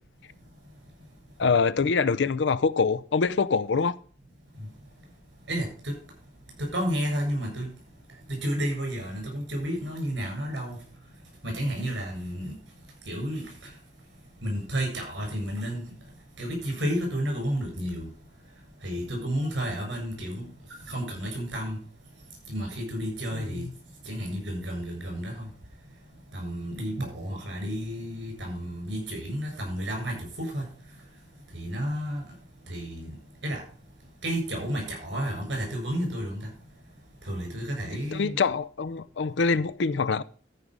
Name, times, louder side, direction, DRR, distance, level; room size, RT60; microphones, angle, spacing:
voice 1, 1.4-4.0 23.3-23.6 38.1-40.2, left 5 dB, 80° left, 0.6 m, -25 dB
voice 2, 5.5-5.9 6.6-7.7 8.3-10.8 11.4-12.5 13.1-13.4 14.4-15.8 16.4-18.1 18.8-20.5 20.9-21.8 22.5-23.6 24.1-25.5 26.3-30.6 31.5-32.2 32.7-33.1 33.4-33.6 34.2-36.5 37.2-38.4, equal, 85° right, 7.3 m, -31 dB
13.5 x 5.4 x 6.2 m
head